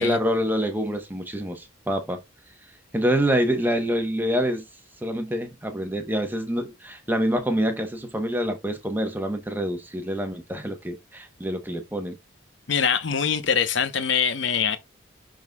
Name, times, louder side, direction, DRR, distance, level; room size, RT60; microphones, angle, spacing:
voice 1, 0.0-2.2 2.9-4.6 5.0-12.2, equal, 10° right, 0.9 m, -26 dB
voice 2, 12.7-14.8, left 7 dB, 65° left, 0.8 m, -23 dB
11.0 x 3.8 x 2.2 m
head